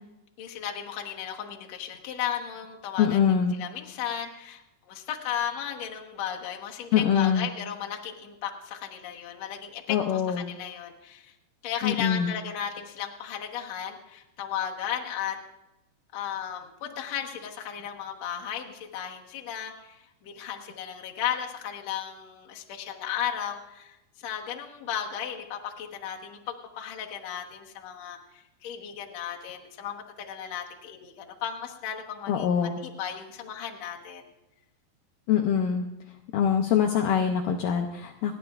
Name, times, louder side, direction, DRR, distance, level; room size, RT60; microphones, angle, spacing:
voice 1, 0.4-11.3 11.6-15.4 16.1-34.3, left 9 dB, 60° left, 1 dB, 1.8 m, -35 dB
voice 2, 3.0-3.5 6.9-7.5 9.9-10.5 11.8-12.3 32.3-32.8 35.3-35.8 36.3-38.4, left 8 dB, 80° left, 3 dB, 1.9 m, -24 dB
30.0 x 11.0 x 2.4 m, 0.94 s
omnidirectional pair, 4.7 m